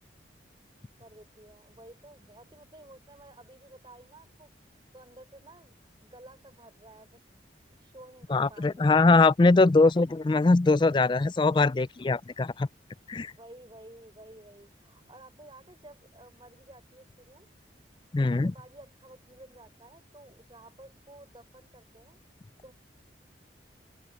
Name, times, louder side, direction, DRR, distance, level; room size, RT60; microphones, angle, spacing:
voice 1, 1.0-4.5 4.9-7.2 7.8-9.1 10.2-10.3 13.4-17.5 18.2-22.2 22.6-22.7, right 1 dB, 25° right, 4.4 m, -52 dB
voice 2, 8.3-12.7 13.1-13.3 18.1-18.5, left 3 dB, 25° left, 0.3 m, -22 dB
open air
head